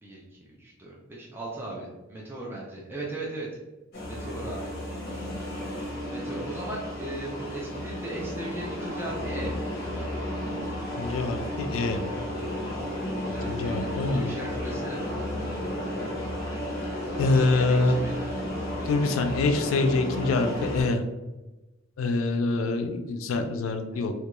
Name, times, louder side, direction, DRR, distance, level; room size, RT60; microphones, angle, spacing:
voice 1, 0.0-3.5 4.1-4.7 6.1-9.5 13.2-15.2 17.2-18.3 23.9-24.1, right 2 dB, 10° right, -4 dB, 0.4 m, -38 dB
sound 1, 3.9-20.8, left 1 dB, 50° left, 0.8 m, -33 dB
voice 2, 11.0-12.0 13.5-14.3 17.2-18.0 18.9-21.0 22.0-24.1, left 3 dB, 85° left, 6 dB, 0.3 m, -25 dB
2.3 x 2.2 x 2.9 m, 1.1 s
head